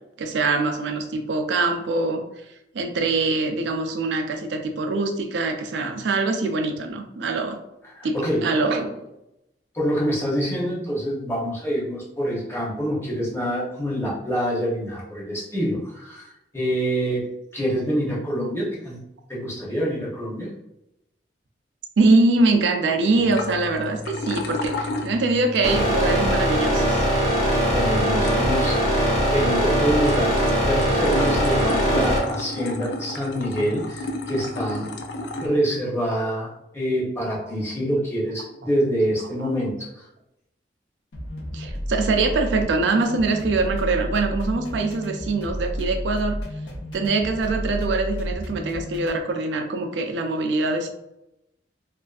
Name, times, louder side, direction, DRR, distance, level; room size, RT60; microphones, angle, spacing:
voice 1, 0.2-2.2 2.7-7.6 8.0-8.2 8.4-9.1 22.0-27.1 39.4-39.5 41.5-46.4 46.9-50.9, right 3 dB, 80° right, 5 dB, 0.4 m, -23 dB
voice 2, 7.8-8.5 9.7-17.3 17.5-19.0 19.3-20.5 27.7-30.4 30.7-34.9 35.4-40.1, equal, 15° left, -5 dB, 0.7 m, -26 dB
sound 1, 23.1-35.5, left 2 dB, 65° left, 0.3 m, -33 dB
sound 2, 25.6-32.2, equal, 40° left, 0.9 m, -21 dB
sound 3, 41.1-49.2, equal, 90° left, 0.8 m, -31 dB
2.4 x 2.4 x 2.3 m, 0.87 s
head